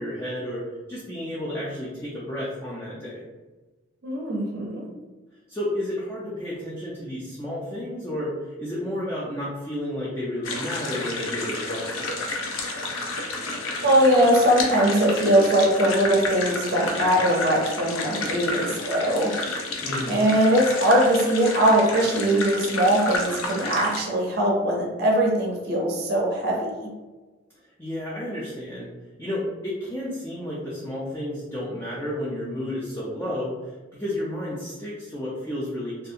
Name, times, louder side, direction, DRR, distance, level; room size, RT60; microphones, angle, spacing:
voice 1, 0.0-3.2 5.5-12.4 19.8-20.3 27.6-28.9 29.2-36.1, left 1 dB, 10° left, -7 dB, 0.3 m, -32 dB
voice 2, 4.0-4.9 13.6-19.3 20.1-26.9, right 1 dB, 50° right, -2 dB, 0.6 m, -21 dB
sound 1, 10.4-24.0, left 2 dB, 85° left, 0.5 m, -31 dB
2.6 x 2.3 x 2.7 m, 1.2 s
head